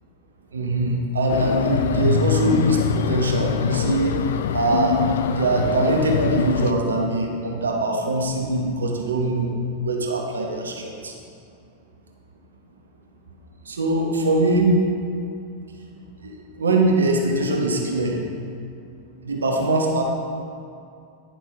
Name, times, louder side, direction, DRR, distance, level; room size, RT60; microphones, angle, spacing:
voice 1, 0.5-4.2 4.5-11.1 13.6-14.8 16.2-18.2 19.2-20.0, right 2 dB, 70° right, 1 dB, 1.0 m, -22 dB
sound 1, 1.3-6.7, left 6 dB, 60° left, 0.3 m, -23 dB
10.0 x 5.9 x 3.5 m, 2.5 s
figure-of-eight pair, 90°, 0 cm